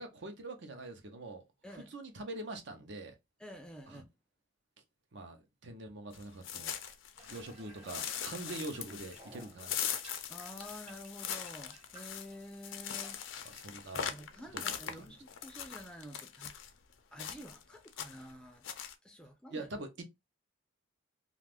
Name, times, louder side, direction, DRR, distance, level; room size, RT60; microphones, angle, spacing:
voice 1, 0.0-1.4 1.7-3.1 3.9-4.0 5.1-6.8 7.3-10.0 13.4-14.1 14.5-15.1 19.5-20.0, right 2 dB, 60° right, 0.7 m, -44 dB
voice 2, 3.4-4.1 10.3-13.2 13.9-16.6 17.1-18.6 19.0-19.7, equal, 5° left, 0.4 m, -49 dB
sound 1, 6.1-7.5 7.9-16.7 17.2-17.6 17.9-18.3 18.6-18.9, left 9 dB, 70° left, 0.5 m, -41 dB
Water tap faucet / Bathtub (filling or washing), 7.2-13.7, right 1 dB, 30° right, 1.0 m, -57 dB
2.5 x 2.4 x 3.4 m
head